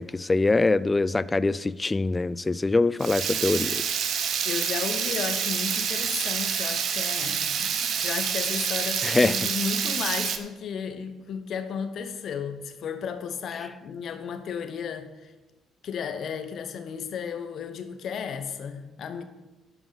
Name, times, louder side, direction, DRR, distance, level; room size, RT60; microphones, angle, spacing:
voice 1, 0.0-3.8 9.0-9.5, left 3 dB, 20° left, 0.4 m, -24 dB
Water tap faucet / Liquid, 3.0-10.4, right 7 dB, 55° right, 0.8 m, -28 dB
voice 2, 4.4-15.3 15.8-19.2, left 6 dB, 55° left, 1.0 m, -34 dB
11.5 x 5.0 x 5.8 m
hypercardioid pair, 50°, 0 cm